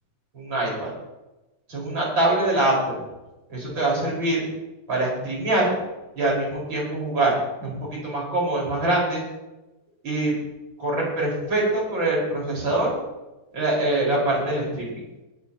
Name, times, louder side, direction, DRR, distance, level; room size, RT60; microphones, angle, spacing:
voice 1, 0.3-0.9 1.7-3.0 3.5-4.4 4.9-5.7 6.2-9.2 10.0-10.3 10.8-13.0 13.5-15.0, right 2 dB, 35° right, -3 dB, 5.7 m, -24 dB
19.0 x 13.0 x 3.0 m, 1.0 s
omnidirectional pair, 3.6 m